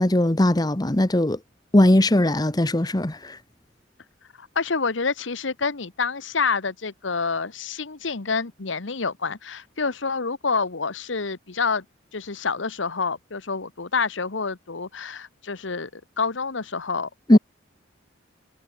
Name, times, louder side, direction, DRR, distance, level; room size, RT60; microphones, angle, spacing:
voice 1, 0.0-1.4 1.7-3.4 17.3-17.4, left 1 dB, 20° left, 1.0 m, -19 dB
voice 2, 4.4-11.8 12.1-17.4, left 4 dB, 75° left, 1.2 m, -28 dB
head